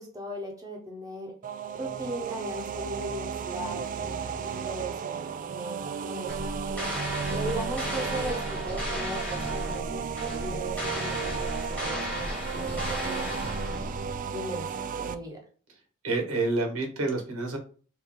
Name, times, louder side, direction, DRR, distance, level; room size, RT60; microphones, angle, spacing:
voice 1, 0.0-1.4 1.7-6.5 7.3-10.1 10.4-13.4 14.3-15.4, right 1 dB, 15° right, -1 dB, 0.9 m, -38 dB
sound 1, 1.4-15.2, right 6 dB, 40° right, 0.3 m, -34 dB
voice 2, 3.7-4.3 16.0-17.6, right 2 dB, 85° right, 3 dB, 1.4 m, -29 dB
sound 2, 6.3-14.2, left 1 dB, 5° left, 1.3 m, -35 dB
4.6 x 2.7 x 3.7 m, 0.41 s
head